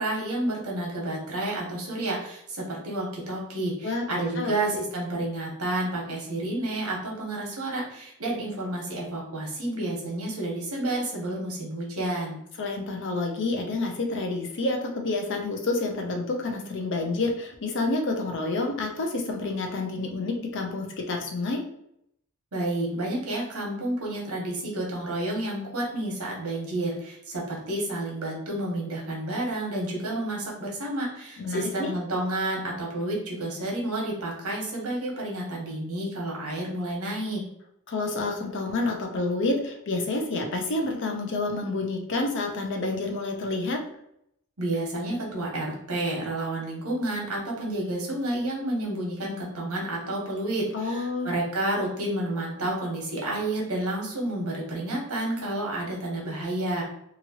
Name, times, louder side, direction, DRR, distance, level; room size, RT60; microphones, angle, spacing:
voice 1, 0.0-12.4 22.5-37.4 44.6-56.8, right 1 dB, 75° right, -2 dB, 1.1 m, -30 dB
voice 2, 3.8-4.8 12.6-21.6 31.4-31.9 37.9-43.8 50.7-51.3, left 2 dB, 60° left, 2 dB, 0.6 m, -29 dB
3.0 x 2.5 x 2.8 m, 0.75 s
head